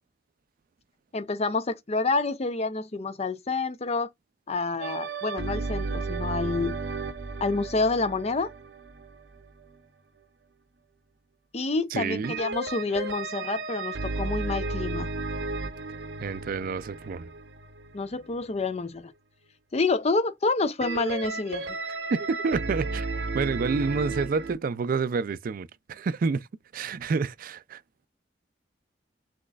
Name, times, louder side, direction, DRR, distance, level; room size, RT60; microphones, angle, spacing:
voice 1, 1.1-4.1 4.5-6.8 7.4-8.5 11.5-15.1 17.9-19.1 19.7-21.7, left 3 dB, 35° left, 0.6 m, -28 dB
sound 1, 4.8-9.8 12.2-18.3 20.8-24.5, right 3 dB, 70° right, 0.8 m, -34 dB
voice 2, 11.9-12.4 16.2-17.3 22.1-26.5 26.7-27.8, right 4 dB, 50° right, 0.4 m, -29 dB
6.2 x 3.1 x 2.3 m
head